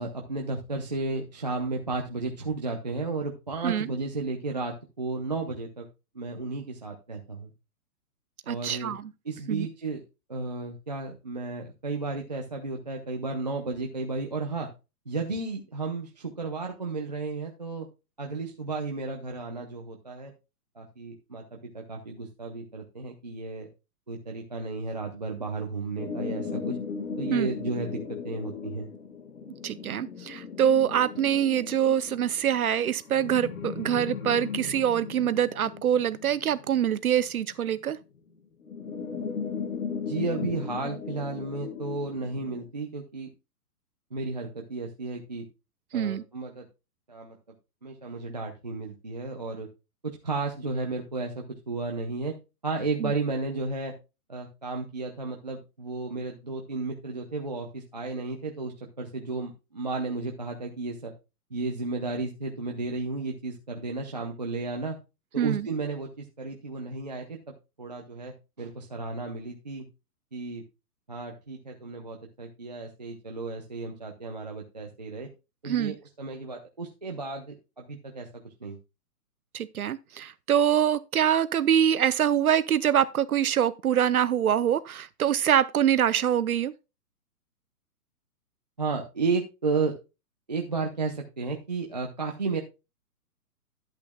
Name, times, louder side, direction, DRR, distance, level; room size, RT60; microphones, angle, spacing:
voice 1, 0.0-5.9 6.1-7.5 8.5-8.9 9.2-10.0 10.3-14.7 15.1-17.9 18.2-20.3 20.8-23.7 24.1-26.8 27.2-28.9 39.9-43.3 44.1-45.4 45.9-46.7 47.1-47.4 47.8-49.7 50.0-52.3 52.6-53.9 54.3-61.1 61.5-65.0 65.3-67.4 67.8-69.9 70.3-70.6 71.1-75.3 75.6-78.3 78.6-78.8 88.8-89.9 90.5-92.6, right 3 dB, 30° right, 0.6 m, -33 dB
voice 2, 8.5-9.1 9.5-9.7 27.3-27.5 29.6-38.0 45.9-46.2 53.0-53.1 65.4-65.7 75.6-76.0 79.5-86.7, right 9 dB, 65° right, 0.6 m, -25 dB
sound 1, 26.0-37.8 38.6-42.7, left 5 dB, 60° left, 1.7 m, -37 dB
11.5 x 8.5 x 2.2 m
hypercardioid pair, 180°, 47 cm